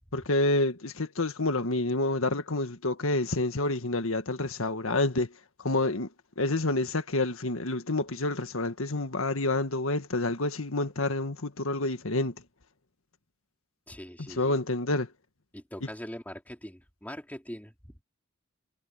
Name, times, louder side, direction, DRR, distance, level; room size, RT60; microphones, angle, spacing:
voice 1, 0.1-5.3 5.6-6.1 6.4-12.3 14.2-15.1, left 2 dB, 75° left, 1.7 m, -28 dB
voice 2, 13.9-14.5 15.5-17.7, equal, 10° left, 3.6 m, -42 dB
head